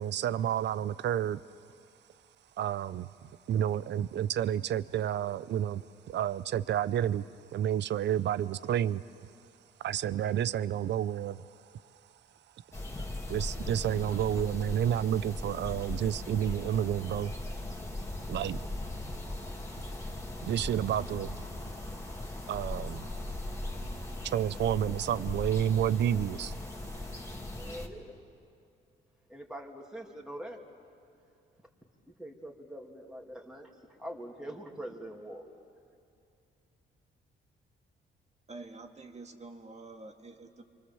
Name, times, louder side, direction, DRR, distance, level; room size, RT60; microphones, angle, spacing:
voice 1, 0.0-1.4 2.6-3.1 3.5-7.2 7.5-9.0 9.8-11.5 13.3-17.3 18.3-18.6 20.4-21.4 22.5-23.0 24.2-26.5, right 10 dB, 60° right, 17 dB, 0.6 m, -30 dB
sound 1, 12.7-27.9, left 1 dB, 15° left, 2.6 m, -39 dB
voice 2, 27.6-28.1 29.3-30.6 32.2-35.5, right 1 dB, 5° right, 0 dB, 2.7 m, -43 dB
voice 3, 38.5-40.6, right 3 dB, 35° right, 4 dB, 2.1 m, -47 dB
29.0 x 24.0 x 7.1 m, 2.5 s
cardioid pair, 90°, 20 cm